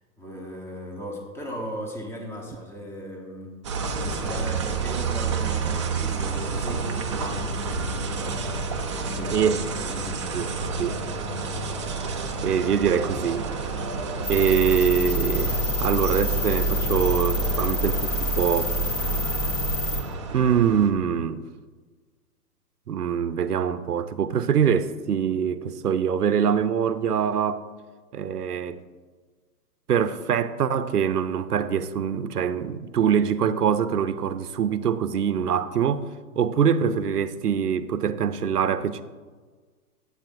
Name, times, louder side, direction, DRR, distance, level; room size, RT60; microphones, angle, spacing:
voice 1, 0.2-3.6 4.0-7.5 9.0-10.3 17.4-17.8, equal, 5° left, 1.0 m, -37 dB
sound 1, 3.6-20.9, right 4 dB, 20° right, 0.4 m, -30 dB
voice 2, 10.8-11.2 12.4-13.5 14.3-15.5 15.8-18.7 20.3-21.4 22.9-27.6 28.1-28.8 29.9-36.1 36.4-39.0, right 7 dB, 80° right, 0.7 m, -24 dB
sound 2, 14.2-20.0, left 1 dB, 25° left, 1.0 m, -26 dB
12.0 x 8.2 x 2.6 m
figure-of-eight pair, 125°, 46 cm